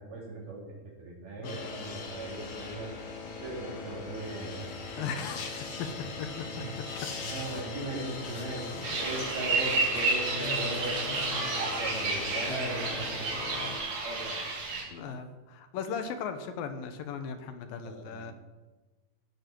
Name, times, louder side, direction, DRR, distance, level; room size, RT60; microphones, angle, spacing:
voice 1, 0.0-2.9 3.4-4.7 5.0-5.1 6.5-6.7 7.2-13.3 14.0-14.5 17.8-18.3, right 2 dB, 80° right, -3 dB, 5.6 m, -38 dB
sound 1, 1.4-13.8, left 4 dB, 45° left, 2.4 m, -40 dB
voice 2, 4.9-6.3 6.6-6.7 10.4-11.5 12.5-12.7 13.4-14.2 14.9-18.3, left 6 dB, 75° left, 8 dB, 2.8 m, -38 dB
sound 2, 8.8-14.8, right 3 dB, 65° right, 4.8 m, -31 dB
Scratching (performance technique), 9.0-13.5, equal, ahead, 3.3 m, -48 dB
16.5 x 12.0 x 4.7 m, 1.2 s
omnidirectional pair, 4.3 m